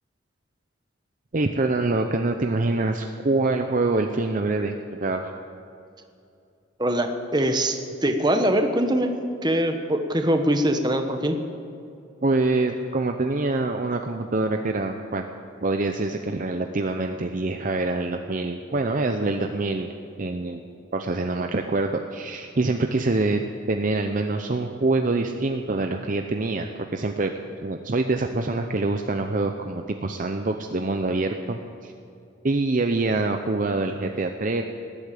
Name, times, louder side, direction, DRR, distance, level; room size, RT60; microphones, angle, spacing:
voice 1, 1.3-5.3 12.2-15.3 15.6-19.9 20.2-20.6 20.9-23.4 23.7-27.3 27.6-31.9 32.4-34.6, right 2 dB, 40° right, 5 dB, 0.6 m, -25 dB
voice 2, 6.8-9.1 9.4-11.4, right 1 dB, 20° right, 6 dB, 1.1 m, -23 dB
19.5 x 8.4 x 8.5 m, 2.5 s
head